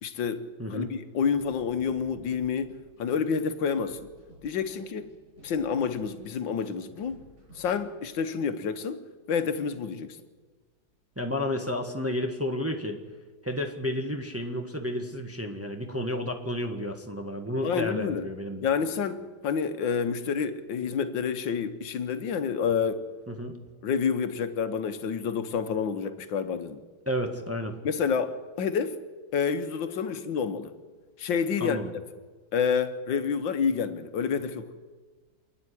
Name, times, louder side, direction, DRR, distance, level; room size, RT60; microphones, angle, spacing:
voice 1, 0.0-2.7 3.0-4.0 4.4-5.1 5.4-7.2 7.6-9.0 9.3-10.2 17.6-18.3 18.6-23.1 23.8-26.8 27.8-29.0 29.3-30.7 31.2-31.8 32.5-34.7, left 6 dB, 80° left, 1.8 m, -28 dB
voice 2, 0.6-0.9 11.2-13.0 13.4-18.6 23.3-23.6 27.1-27.8 31.6-31.9, left 1 dB, 10° right, 1.3 m, -31 dB
sound 1, 1.3-7.7, right 2 dB, 40° right, 7.0 m, -54 dB
27.5 x 9.8 x 9.9 m
omnidirectional pair, 2.0 m